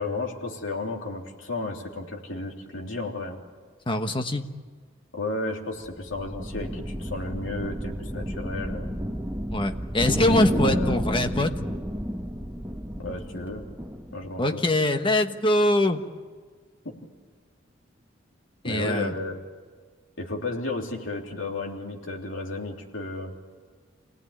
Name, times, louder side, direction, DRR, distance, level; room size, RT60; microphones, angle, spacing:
voice 1, 0.0-3.4 5.1-8.9 10.3-10.4 10.7-11.0 13.0-13.7 14.1-14.6 16.8-16.9 18.6-19.4 20.2-23.3, left 2 dB, 75° left, 1 dB, 3.3 m, -33 dB
voice 2, 3.9-4.5 9.5-11.5 14.4-16.0 18.6-19.1, left 1 dB, 25° left, 7 dB, 1.2 m, -23 dB
sound 1, 5.8-14.3, equal, 10° right, 1.6 m, -31 dB
25.5 x 18.0 x 9.9 m, 1.5 s
head